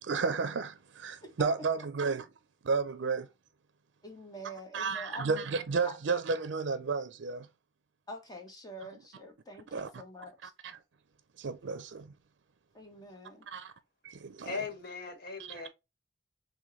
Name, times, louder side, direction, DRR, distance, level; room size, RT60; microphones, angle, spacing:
voice 1, 0.0-2.3 2.6-3.3 4.7-7.5 9.7-10.0 10.4-10.5 11.4-12.1 13.5-13.7 14.0-14.6 15.5-15.7, right 4 dB, 80° right, 0.5 m, -32 dB
voice 2, 4.0-5.2 5.8-5.9 8.1-10.5 12.7-13.5, equal, 20° left, 1.0 m, -46 dB
voice 3, 14.4-15.7, left 4 dB, 55° left, 1.2 m, -38 dB
6.2 x 2.2 x 3.0 m
head